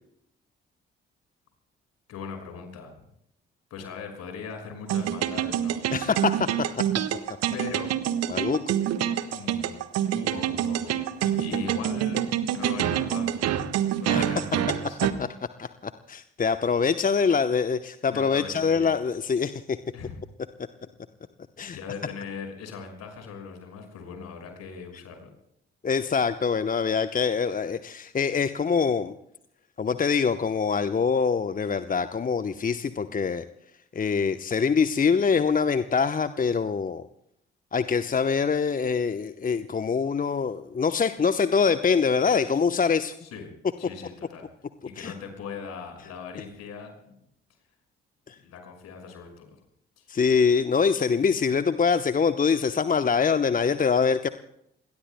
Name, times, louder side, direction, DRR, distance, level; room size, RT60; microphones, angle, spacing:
voice 1, 2.1-2.9 3.7-5.8 7.5-7.9 9.3-9.8 10.1-10.9 11.4-13.5 14.0-15.0 18.0-18.9 19.9-20.2 21.6-25.3 43.2-43.5 43.8-44.4 44.8-46.9 48.4-49.6 50.0-50.1, left 5 dB, 60° left, 4 dB, 6.0 m, -39 dB
sound 1, 4.9-15.1, right 10 dB, 55° right, 1.4 m, -26 dB
voice 2, 5.9-6.5 8.3-8.7 14.1-14.3 15.6-19.8 21.6-21.8 25.8-29.1 29.8-33.4 33.9-37.1 37.7-43.1 45.0-45.1 48.3-48.4 50.1-54.3, left 5 dB, 25° left, 11 dB, 0.9 m, -24 dB
28.0 x 22.0 x 2.2 m, 0.75 s
figure-of-eight pair, 40°, 30 cm